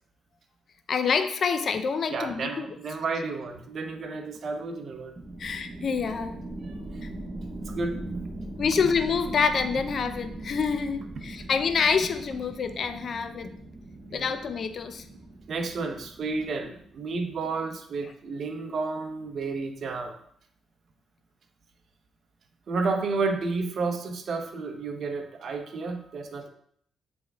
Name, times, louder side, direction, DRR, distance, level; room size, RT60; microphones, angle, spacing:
voice 1, 0.9-2.7 5.4-6.4 7.0-7.1 8.6-13.5 14.1-15.0, left 6 dB, 50° left, 9 dB, 0.5 m, -27 dB
voice 2, 2.1-5.1 6.9-7.0 7.6-8.3 14.1-14.3 15.5-20.1 22.7-26.5, right 3 dB, 55° right, 5 dB, 0.9 m, -31 dB
sound 1, 5.2-17.4, right 2 dB, 20° right, 1.1 m, -40 dB
8.0 x 3.5 x 3.6 m, 0.66 s
cardioid pair, 90°, 0 cm